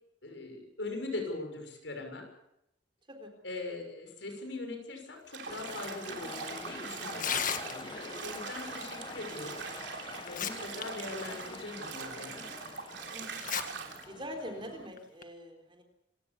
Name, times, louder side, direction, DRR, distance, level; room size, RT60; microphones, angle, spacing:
voice 1, 0.2-2.3 3.4-9.6 10.2-12.5, left 2 dB, 75° left, 4 dB, 6.4 m, -41 dB
Bathtub (filling or washing), 5.3-14.0, right 5 dB, 70° right, 3.3 m, -43 dB
sound 1, 5.5-14.9, left 3 dB, 25° left, 1.1 m, -46 dB
Tearing, 7.1-8.1 9.5-9.6 10.1-10.8 11.2-11.3 12.0-12.1 13.3-13.6 14.0-14.1 15.0-15.2, left 8 dB, 45° left, 1.7 m, -34 dB
voice 2, 13.1-13.5 14.0-15.8, equal, 30° right, 5 dB, 3.7 m, -43 dB
26.5 x 17.0 x 7.2 m, 0.83 s
head